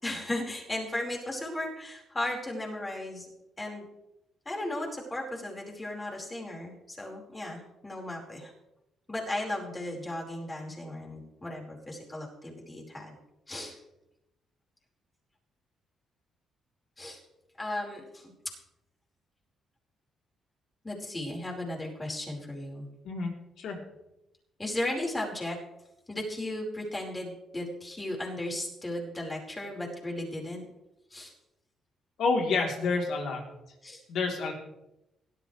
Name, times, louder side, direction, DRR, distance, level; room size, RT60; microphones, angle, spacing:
voice 1, 0.0-3.3 3.6-3.9 4.4-8.5 9.1-13.2 13.5-13.8 17.0-17.2 17.6-18.3 20.8-22.9 24.6-25.6 26.1-30.6 31.1-31.3 33.8-34.0, left 1 dB, 20° left, -1 dB, 4.9 m, -35 dB
voice 2, 23.0-23.8 32.2-33.4 34.1-34.5, left 4 dB, 75° left, 1 dB, 3.5 m, -29 dB
17.5 x 13.0 x 3.4 m, 0.90 s
cardioid pair, 90°, 0 cm